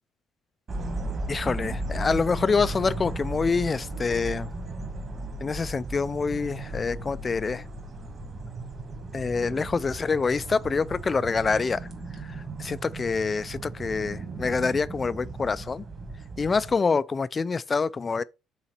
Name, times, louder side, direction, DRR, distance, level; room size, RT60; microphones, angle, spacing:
sound 1, 0.7-16.7, right 2 dB, 35° right, 1.8 m, -36 dB
voice 1, 1.3-4.5 5.4-7.6 9.1-11.8 12.6-15.8 16.4-18.2, left 4 dB, 25° left, 0.3 m, -26 dB
5.8 x 4.0 x 4.2 m
cardioid pair, 135°, 0 cm